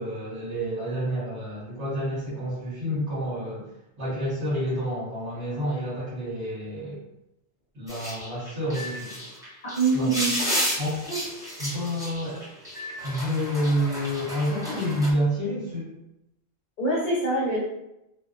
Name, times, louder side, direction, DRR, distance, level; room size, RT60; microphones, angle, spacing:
voice 1, 0.0-3.7 4.0-7.0 7.7-9.1 9.9-10.1 10.8-12.4 13.0-15.9, equal, 85° right, -13 dB, 1.5 m, -29 dB
sound 1, 7.9-15.1, equal, 5° right, 0.4 m, -32 dB
voice 2, 9.6-10.3 16.8-17.6, right 3 dB, 55° left, -6 dB, 0.7 m, -24 dB
2.9 x 2.1 x 2.4 m, 0.89 s
omnidirectional pair, 1.1 m